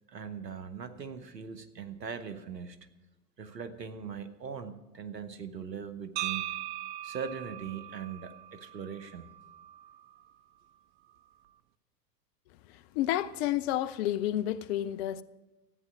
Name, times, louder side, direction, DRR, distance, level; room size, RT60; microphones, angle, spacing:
voice 1, 0.1-2.8 3.4-6.5 7.0-9.3, right 6 dB, 90° right, 1.0 m, -40 dB
sound 1, 6.2-10.2, right 14 dB, 40° right, 0.6 m, -40 dB
voice 2, 12.9-15.2, left 13 dB, 40° left, 0.6 m, -30 dB
13.5 x 9.3 x 6.1 m
figure-of-eight pair, 90°, 48 cm